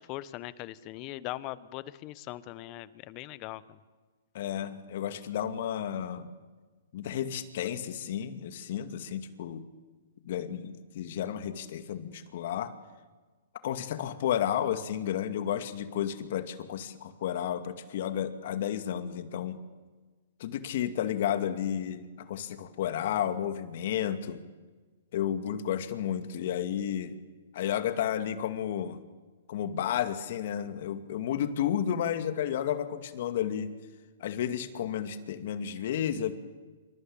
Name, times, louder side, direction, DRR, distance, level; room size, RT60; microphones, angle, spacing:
voice 1, 0.0-3.8, left 16 dB, 35° left, 17 dB, 1.2 m, -40 dB
voice 2, 4.3-6.3 6.9-9.6 10.2-12.7 13.6-19.6 20.4-24.4 25.1-27.2 27.5-29.0 29.5-33.7 34.2-36.3, left 10 dB, 55° left, 10 dB, 2.4 m, -32 dB
27.0 x 24.0 x 8.9 m, 1.3 s
hypercardioid pair, 140°, 0 cm